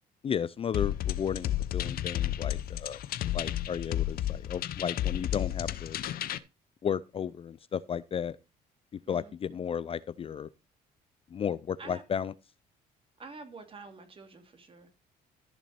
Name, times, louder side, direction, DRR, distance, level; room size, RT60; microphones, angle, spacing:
voice 1, 0.2-3.0 3.3-6.0 6.8-8.4 9.1-10.5 11.3-12.3, left 8 dB, 35° left, 0.5 m, -34 dB
sound 1, 0.7-6.4, left 12 dB, 60° left, 0.8 m, -32 dB
voice 2, 13.2-14.9, right 4 dB, 30° right, 2.8 m, -47 dB
14.0 x 6.2 x 4.3 m
cardioid pair, 110°, 17 cm